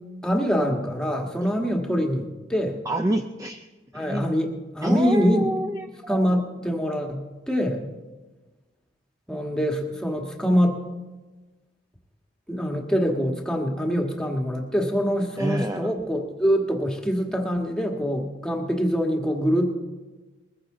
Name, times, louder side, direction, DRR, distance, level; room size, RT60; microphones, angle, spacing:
voice 1, 0.2-2.8 3.9-5.4 6.1-7.9 9.3-10.8 12.5-19.8, equal, 5° left, 1 dB, 1.6 m, -24 dB
voice 2, 2.8-3.7 3.9-4.4 4.8-6.4 15.4-15.9, right 1 dB, 15° right, 6 dB, 0.5 m, -28 dB
21.5 x 15.0 x 3.8 m, 1.2 s
head